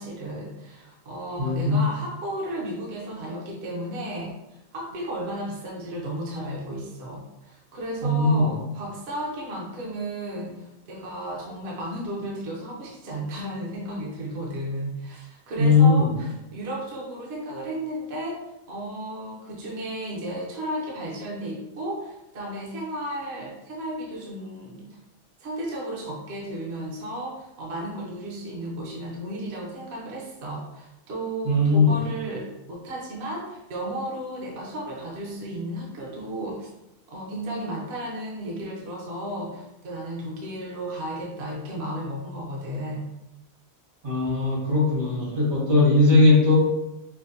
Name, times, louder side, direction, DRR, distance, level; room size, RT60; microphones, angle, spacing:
voice 1, 0.0-18.4 18.7-24.9 25.4-36.7 37.1-43.1, right 1 dB, 55° right, -3 dB, 0.9 m, -34 dB
voice 2, 1.4-1.8 8.0-8.5 15.6-16.1 31.4-32.0 44.0-46.6, left 3 dB, 75° right, -5 dB, 1.7 m, -19 dB
5.6 x 2.1 x 2.7 m, 0.93 s
omnidirectional pair, 1.4 m